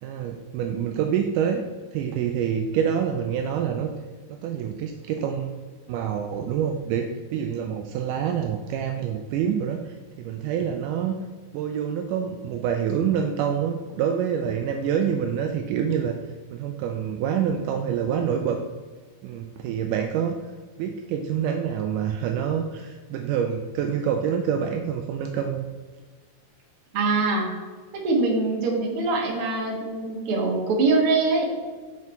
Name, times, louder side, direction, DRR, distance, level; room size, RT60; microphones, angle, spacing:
voice 1, 0.0-1.6 1.9-3.9 4.3-5.6 5.9-11.2 11.5-16.2 16.5-18.6 19.2-20.4 20.8-25.7, right 8 dB, 85° right, 4 dB, 1.8 m, -26 dB
voice 2, 26.9-27.5 28.0-31.4, right 3 dB, 50° right, -1 dB, 1.9 m, -23 dB
7.6 x 6.0 x 4.4 m, 1.4 s
omnidirectional pair, 4.2 m